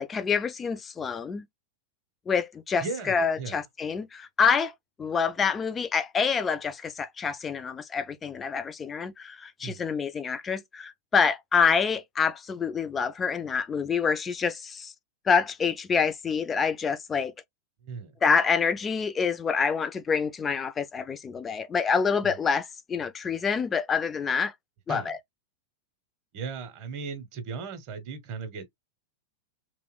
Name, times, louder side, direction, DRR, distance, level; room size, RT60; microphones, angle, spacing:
voice 1, 0.0-1.5 2.3-4.7 5.0-14.9 15.3-17.3 18.2-24.5 24.9-25.2, left 6 dB, 20° left, 0.3 m, -27 dB
voice 2, 2.8-3.6 9.6-9.9 17.8-18.2 22.2-22.4 24.9-25.2 26.3-28.7, right 5 dB, 45° right, 0.7 m, -37 dB
2.8 x 2.0 x 2.2 m
figure-of-eight pair, 90°, 0 cm